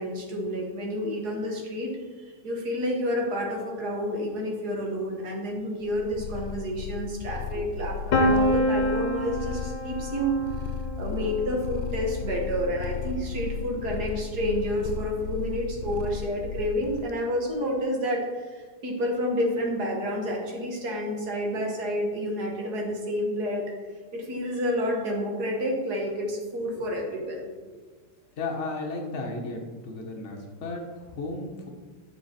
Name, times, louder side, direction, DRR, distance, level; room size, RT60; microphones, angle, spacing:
voice 1, 0.0-1.9 2.4-10.4 11.0-18.3 18.5-23.7 24.1-27.5, equal, 55° right, 0 dB, 2.0 m, -29 dB
Purr, 5.8-17.1, left 6 dB, 80° left, 1.4 m, -35 dB
Piano, 8.1-13.9, left 1 dB, 65° left, 1.5 m, -28 dB
voice 2, 28.4-31.7, left 3 dB, 40° left, 1 dB, 1.4 m, -34 dB
10.0 x 5.8 x 4.4 m, 1.4 s
omnidirectional pair, 2.2 m